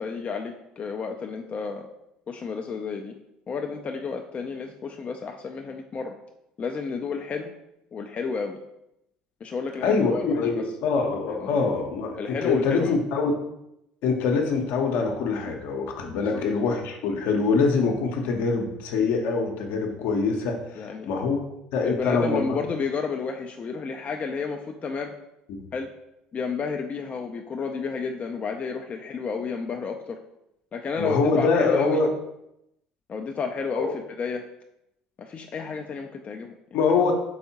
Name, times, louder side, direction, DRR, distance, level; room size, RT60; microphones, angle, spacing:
voice 1, 0.0-1.9 2.3-3.2 3.5-6.2 6.6-7.5 7.9-8.6 9.4-10.7 11.4-11.5 12.2-13.0 16.1-16.4 20.8-21.1 21.8-25.1 25.7-25.9 26.3-30.2 30.7-32.0 33.1-34.4 35.2-36.6, left 5 dB, 35° left, 3 dB, 0.4 m, -31 dB
voice 2, 9.8-13.3 14.0-21.4 21.7-22.6 25.5-25.6 31.0-32.1 33.7-33.9 36.7-37.1, left 4 dB, 65° left, 2 dB, 0.7 m, -24 dB
4.7 x 3.4 x 2.8 m, 0.84 s
hypercardioid pair, 65°, 4 cm